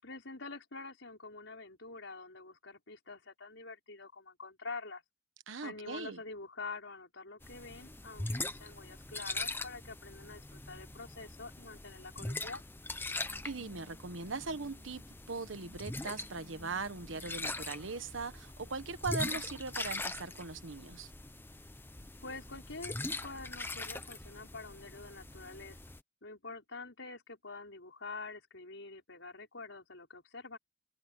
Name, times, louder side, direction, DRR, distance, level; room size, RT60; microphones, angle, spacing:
voice 1, 0.0-5.0 5.6-12.6 22.2-22.9 23.2-25.8 26.2-30.6, left 3 dB, 70° left, 6.0 m, -46 dB
voice 2, 5.5-6.2 13.2-21.1, right 4 dB, 80° right, 1.2 m, -40 dB
sound 1, 7.4-26.0, left 2 dB, 10° left, 0.9 m, -42 dB
head